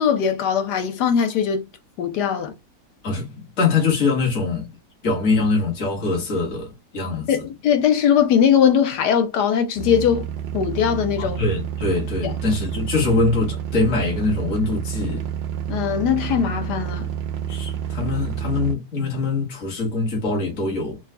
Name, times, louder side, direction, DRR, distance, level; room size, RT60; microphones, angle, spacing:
voice 1, 0.0-1.7 2.0-2.5 7.3-10.3 10.5-11.4 12.2-12.3 15.7-17.1, left 8 dB, 75° left, 1.4 m, -20 dB
voice 2, 3.0-4.7 5.0-7.3 11.2-15.3 17.5-21.0, left 3 dB, 50° left, 1.7 m, -23 dB
sound 1, 9.7-18.7, right 9 dB, 80° right, 0.5 m, -29 dB
4.0 x 2.3 x 3.2 m
omnidirectional pair, 1.8 m